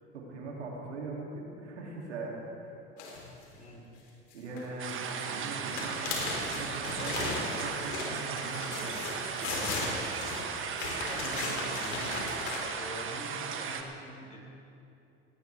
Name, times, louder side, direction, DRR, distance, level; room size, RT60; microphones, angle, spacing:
voice 1, 0.1-2.3 4.3-6.1 6.4-9.9, right 3 dB, 85° right, -2 dB, 2.8 m, -41 dB
sound 1, 3.0-3.5 4.3-4.6 4.9-12.6, left 3 dB, 75° left, 3.7 m, -36 dB
voice 2, 3.5-3.9 10.8-14.4, equal, 20° left, -1 dB, 4.5 m, -45 dB
sound 2, 4.8-13.8, right 6 dB, 35° right, 1.4 m, -36 dB
18.0 x 18.0 x 3.5 m, 2.8 s
hypercardioid pair, 85°, 33 cm